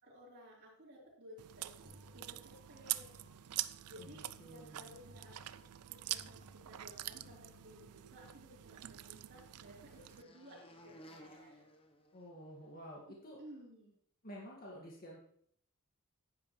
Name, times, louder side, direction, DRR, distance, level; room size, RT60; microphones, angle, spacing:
voice 1, 0.0-3.2 3.9-5.4 5.9-6.4 6.7-11.6 13.1-13.9, equal, 50° right, -12 dB, 4.2 m, -57 dB
Chewing mastication, 1.4-10.2, right 14 dB, 85° right, 0.5 m, -45 dB
sound 1, 1.8-8.2, left 2 dB, 65° right, 1.8 m, -63 dB
voice 2, 4.0-4.9 12.1-13.4 14.2-15.2, equal, 40° left, -3 dB, 2.0 m, -51 dB
sound 2, 8.2-12.8, equal, 25° left, 0.9 m, -60 dB
11.0 x 9.9 x 3.2 m, 0.63 s
head